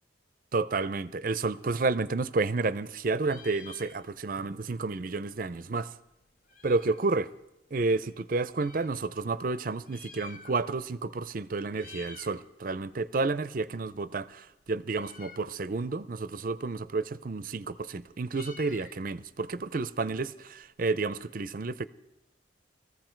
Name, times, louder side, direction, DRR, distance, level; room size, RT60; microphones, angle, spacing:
voice 1, 0.5-5.9 6.6-7.3 7.7-21.9, right 3 dB, 50° right, 0.5 m, -31 dB
Meow, 2.2-2.9 3.1-4.4 4.7-4.8 5.0-7.1 7.8-9.0 9.7-10.9 11.2-11.4 11.7-12.4 12.8-20.6, left 5 dB, 50° left, 1.0 m, -52 dB
20.5 x 14.5 x 4.5 m
head